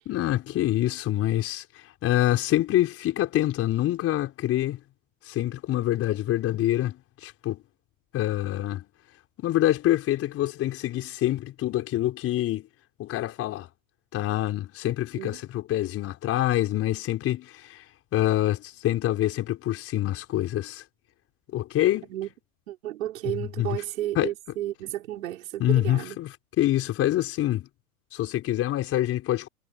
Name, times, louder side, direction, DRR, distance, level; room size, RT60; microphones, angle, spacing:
voice 1, 0.1-1.6 2.0-4.8 5.2-7.6 8.1-8.9 9.4-12.7 13.0-13.7 14.1-17.8 18.1-20.8 21.5-22.1 23.4-23.8 24.1-24.3 25.6-27.7 28.1-29.5, left 14 dB, 35° left, 4.9 m, -26 dB
voice 2, 22.7-26.2, right 13 dB, 70° right, 5.4 m, -33 dB
hypercardioid pair, 120°, 42 cm